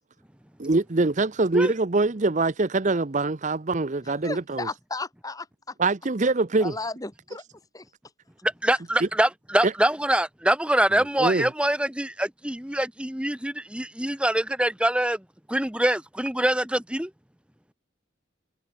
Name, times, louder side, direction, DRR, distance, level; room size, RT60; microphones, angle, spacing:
voice 1, 0.6-4.7 5.8-6.7 9.0-9.1 9.6-9.7 11.2-11.5, right 3 dB, 40° right, 0.7 m, -24 dB
voice 2, 4.2-5.7 6.6-7.4 7.7-7.9, left 3 dB, 20° left, 1.8 m, -34 dB
voice 3, 8.4-15.2 15.5-17.1, right 1 dB, 5° right, 1.1 m, -24 dB
open air
head